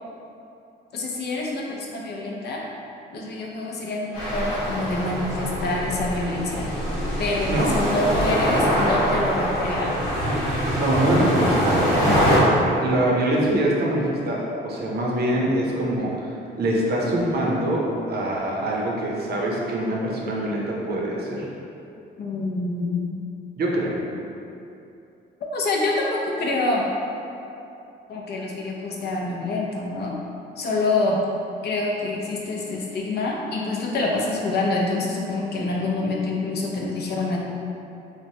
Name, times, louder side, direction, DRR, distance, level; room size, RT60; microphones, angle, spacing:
voice 1, 0.9-2.6 3.1-6.7 7.2-9.9 22.2-23.2 25.4-26.9 28.1-30.2 30.6-31.2 31.6-37.4, left 2 dB, 55° left, -2 dB, 0.5 m, -26 dB
sound 1, 4.1-12.4, equal, 90° left, 1.0 m, -23 dB
voice 2, 10.7-11.8 12.1-12.3 12.8-16.3 16.6-21.5 23.6-24.0, right 1 dB, 55° right, -3 dB, 0.6 m, -24 dB
3.1 x 2.1 x 2.7 m, 2.7 s
cardioid pair, 90°, 20 cm